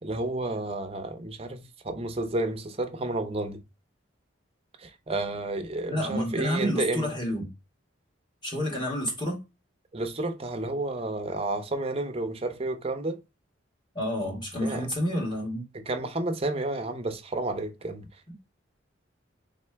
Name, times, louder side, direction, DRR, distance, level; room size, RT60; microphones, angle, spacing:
voice 1, 0.0-3.6 4.8-7.1 9.9-13.2 14.6-14.9 15.7-18.1, right 2 dB, 30° right, 0.6 m, -31 dB
voice 2, 5.9-7.5 8.4-9.4 13.9-15.6 18.3-18.4, equal, 25° left, 1.6 m, -29 dB
3.6 x 3.3 x 3.3 m
head